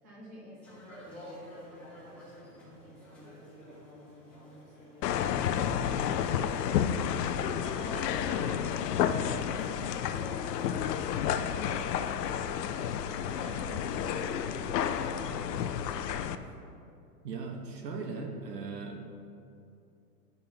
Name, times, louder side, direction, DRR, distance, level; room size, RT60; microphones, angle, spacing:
voice 1, 0.0-12.5 13.5-16.7, equal, 15° right, -7 dB, 0.3 m, -51 dB
sound 1, 0.6-14.4, equal, 5° left, 1.1 m, -50 dB
sound 2, 5.0-16.3, left 8 dB, 80° left, 0.6 m, -31 dB
voice 2, 17.2-19.0, right 4 dB, 75° right, 3 dB, 1.3 m, -38 dB
11.0 x 5.5 x 2.8 m, 2.5 s
hypercardioid pair, 150°, 48 cm